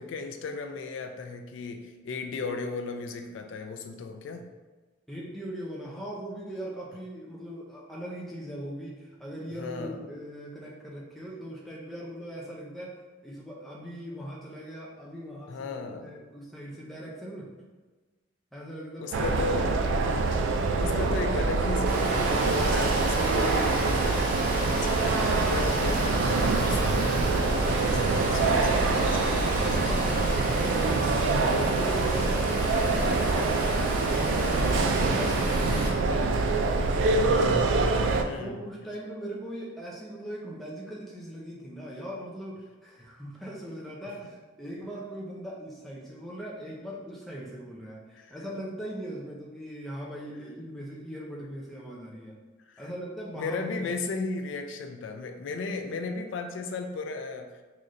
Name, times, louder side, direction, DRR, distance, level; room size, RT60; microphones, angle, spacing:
voice 1, 0.0-4.5 9.6-10.0 15.5-16.1 19.0-19.7 20.8-23.9 24.7-30.3 37.3-37.8 38.2-38.6 48.1-48.3 52.7-52.8 53.4-57.6, left 3 dB, 80° left, 5 dB, 0.3 m, -36 dB
voice 2, 5.1-17.5 18.5-19.6 22.8-23.1 30.6-33.8 34.1-36.3 36.7-37.5 38.4-52.4 52.8-54.0, equal, ahead, -5 dB, 0.5 m, -40 dB
sound 1, 19.1-38.2, right 3 dB, 85° right, 0.3 m, -25 dB
Water, 21.8-35.9, right 1 dB, 45° right, 0.7 m, -32 dB
3.8 x 3.1 x 2.5 m, 1.3 s
head